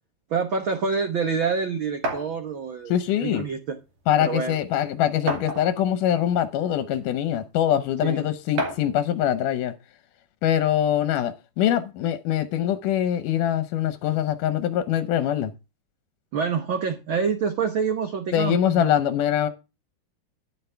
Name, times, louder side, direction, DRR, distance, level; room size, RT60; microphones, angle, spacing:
voice 1, 0.3-2.9 3.2-3.8 4.2-4.6 8.0-8.2 16.3-18.9, right 5 dB, 60° right, 1.4 m, -27 dB
sound 1, 2.0-2.3 3.5-3.6 4.0-4.1 5.3-5.9 6.8-6.9 8.6-9.0, right 1 dB, 75° right, 4.3 m, -29 dB
voice 2, 2.9-3.4 4.1-9.7 10.4-15.5 18.3-19.5, left 10 dB, 80° left, 2.4 m, -23 dB
11.0 x 10.0 x 3.3 m
omnidirectional pair, 3.7 m